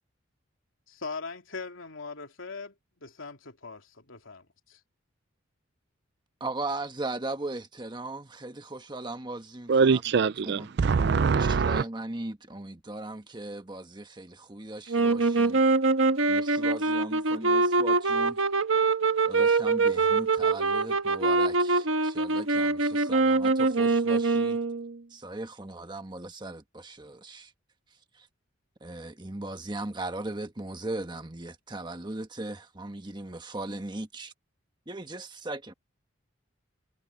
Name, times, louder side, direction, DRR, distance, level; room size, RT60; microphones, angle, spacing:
voice 1, 0.9-4.5, left 4 dB, 80° left, 3.0 m, -40 dB
voice 2, 6.4-10.0 10.4-10.7 11.3-15.6 16.3-18.4 19.3-24.6 25.1-27.5 28.1-28.3 28.8-34.3 34.9-35.7, right 2 dB, 20° right, 1.4 m, -38 dB
voice 3, 9.7-11.8, right 5 dB, 55° right, 0.4 m, -23 dB
sound 1, 14.9-24.9, right 3 dB, 80° right, 1.4 m, -24 dB
head